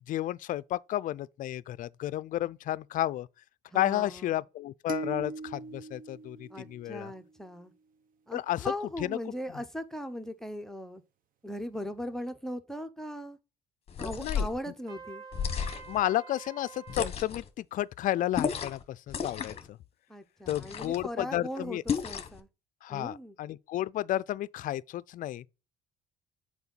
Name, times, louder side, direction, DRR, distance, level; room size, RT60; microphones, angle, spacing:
voice 1, 0.1-3.3 3.7-7.1 8.3-8.7 9.0-9.2 14.2-14.5 15.9-19.8 20.5-21.8 22.8-25.4, left 13 dB, 50° left, 0.4 m, -32 dB
voice 2, 3.7-4.4 6.5-7.7 8.3-11.0 11.4-13.4 14.0-15.2 20.1-22.5 22.9-23.4, equal, 5° left, 0.8 m, -39 dB
sound 1, 4.9-7.3, right 4 dB, 55° right, 0.8 m, -40 dB
sound 2, 13.9-14.6 15.3-16.0 16.9-17.5 18.3-18.8 19.1-19.7 20.5-21.0 21.9-22.4, left 6 dB, 35° left, 1.0 m, -33 dB
Trumpet, 14.9-17.1, right 6 dB, 80° right, 1.9 m, -47 dB
6.9 x 4.5 x 3.9 m
cardioid pair, 110°, 17 cm